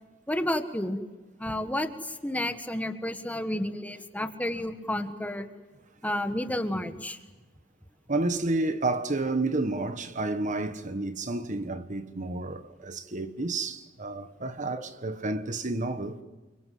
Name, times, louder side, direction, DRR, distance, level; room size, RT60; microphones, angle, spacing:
voice 1, 0.3-1.0 1.4-5.5 6.0-7.2 14.8-14.9, left 1 dB, 10° left, 1.6 m, -31 dB
voice 2, 8.1-16.2, right 2 dB, 40° right, 1.4 m, -30 dB
30.0 x 24.5 x 7.8 m
head